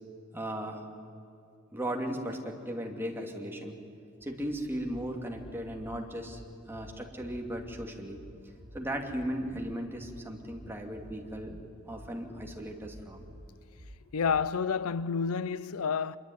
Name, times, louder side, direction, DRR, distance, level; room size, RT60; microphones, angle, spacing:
voice 1, 0.3-0.8 1.7-3.8 4.2-6.4 6.7-8.2 8.7-11.6 11.8-13.2, equal, 10° right, 2.6 m, -36 dB
sound 1, 4.2-14.5, equal, 85° right, 4.1 m, -52 dB
voice 2, 14.1-16.2, left 6 dB, 80° left, 0.5 m, -29 dB
25.5 x 22.5 x 9.6 m
head